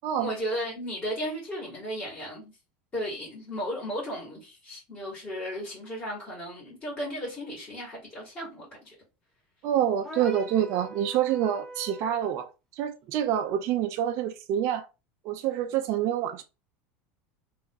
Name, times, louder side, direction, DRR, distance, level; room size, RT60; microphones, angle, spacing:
voice 1, 0.2-2.5 2.9-8.9, equal, 25° left, 2.3 m, -35 dB
voice 2, 9.6-14.9 15.2-16.4, right 10 dB, 50° right, 0.5 m, -27 dB
sound 1, 10.0-12.3, equal, 5° left, 0.8 m, -42 dB
3.4 x 2.9 x 3.8 m
supercardioid pair, 140°, 6 cm